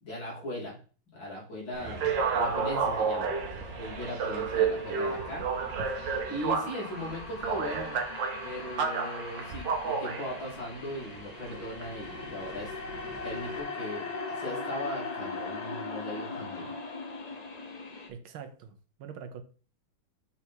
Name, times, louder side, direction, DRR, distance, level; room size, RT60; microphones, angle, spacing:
voice 1, 0.0-0.8 1.1-3.3 3.8-5.5 6.3-8.0 8.4-12.7 13.2-16.7, left 1 dB, 70° left, 4.0 m, -38 dB
sound 1, 1.7-13.6, right 5 dB, 65° right, 1.6 m, -32 dB
sound 2, 2.0-18.1, left 3 dB, 50° left, 0.4 m, -41 dB
voice 2, 18.1-19.4, right 7 dB, 85° right, 1.7 m, -44 dB
7.0 x 4.2 x 4.5 m
omnidirectional pair, 2.2 m